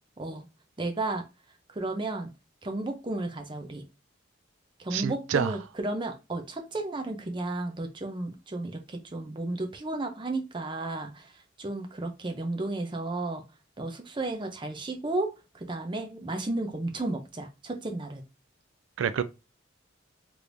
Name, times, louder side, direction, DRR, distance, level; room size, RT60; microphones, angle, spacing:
voice 1, 0.8-1.2 1.7-2.3 2.6-3.8 4.8-11.3 11.6-13.4 13.8-15.3 15.5-18.2, right 2 dB, 25° right, 0.6 m, -33 dB
voice 2, 4.9-5.5 19.0-19.2, right 7 dB, 90° right, 0.4 m, -27 dB
3.4 x 3.1 x 2.6 m
head